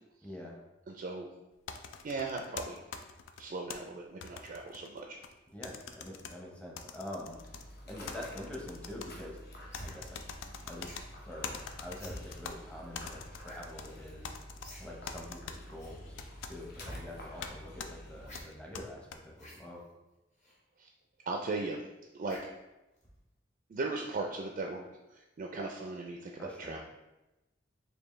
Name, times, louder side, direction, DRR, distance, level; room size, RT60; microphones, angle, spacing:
voice 1, 0.2-0.5 5.5-7.4 7.9-9.4 9.8-10.2 10.7-14.3 14.8-16.2 16.4-19.8 26.4-26.8, left 1 dB, 5° left, -2 dB, 0.7 m, -45 dB
voice 2, 0.9-1.3 2.0-2.8 3.4-5.2 20.8-20.9 21.3-21.9 22.1-22.4 23.7-24.8 25.1-26.8, right 3 dB, 45° right, 1 dB, 0.3 m, -37 dB
sound 1, 1.7-3.8 4.2-5.3 5.6-6.3 6.8-7.6 8.1-9.1 9.7-11.0 11.4-12.5 12.9-13.9 14.2-14.7 15.1-15.6 16.2-16.5 17.4-17.5 17.8-17.9 18.3-19.2, left 6 dB, 80° left, 0.3 m, -43 dB
Dog, 7.2-18.4, equal, 55° left, 0.7 m, -49 dB
sound 2, 9.7-9.9 10.8-11.1 11.9-12.2 13.4-13.6 13.9-14.0 14.6-14.8 15.1-15.2 15.8-16.0 16.7-17.0 18.2-18.4 19.3-19.6 20.4-20.5 22.3-22.6 23.0-23.2, equal, 40° left, 1.1 m, -48 dB
4.4 x 2.7 x 3.1 m, 1.0 s
head